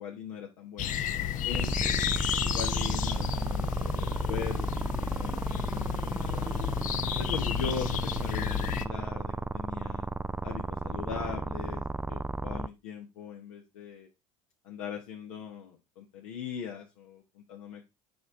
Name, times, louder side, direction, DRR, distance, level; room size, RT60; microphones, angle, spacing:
voice 1, 0.0-1.9 2.4-6.6 7.2-10.1 10.4-14.1 14.6-17.9, left 7 dB, 75° left, 1 dB, 1.1 m, -40 dB
sound 1, 0.8-8.8, left 10 dB, 50° left, 0.7 m, -32 dB
sound 2, 1.5-12.7, right 3 dB, 10° right, 0.3 m, -33 dB
7.8 x 4.7 x 3.6 m, 0.24 s
hypercardioid pair, 70°, 17 cm